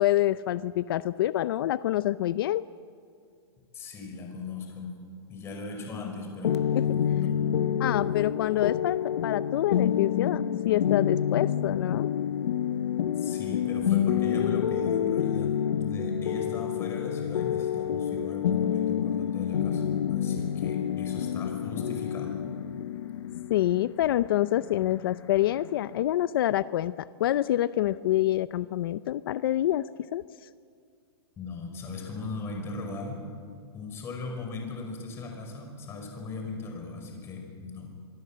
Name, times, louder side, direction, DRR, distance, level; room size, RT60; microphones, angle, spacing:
voice 1, 0.0-2.6 6.7-6.8 7.8-12.1 23.5-30.2, left 13 dB, 60° left, 15 dB, 0.6 m, -26 dB
voice 2, 3.7-5.0 5.3-6.6 6.8-7.3 13.2-19.8 20.1-22.4 31.4-33.2 33.7-37.9, left 3 dB, 20° left, 2 dB, 5.2 m, -38 dB
sound 1, 6.4-26.0, left 9 dB, 85° left, 0.9 m, -28 dB
25.0 x 23.5 x 7.6 m, 2.2 s
supercardioid pair, 160°, 14 cm